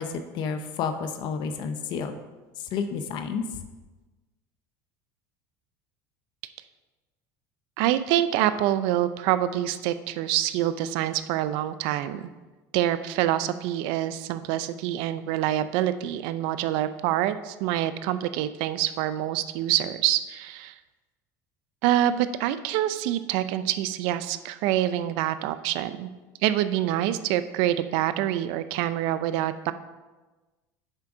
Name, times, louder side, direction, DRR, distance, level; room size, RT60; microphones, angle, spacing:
voice 1, 0.0-2.1 2.7-3.4, left 6 dB, 55° left, 7 dB, 0.7 m, -30 dB
voice 2, 7.8-12.3 12.7-20.7 21.8-26.1 26.4-29.7, right 12 dB, 70° right, 12 dB, 0.4 m, -26 dB
8.9 x 3.5 x 4.9 m, 1.2 s
supercardioid pair, 105°, 9 cm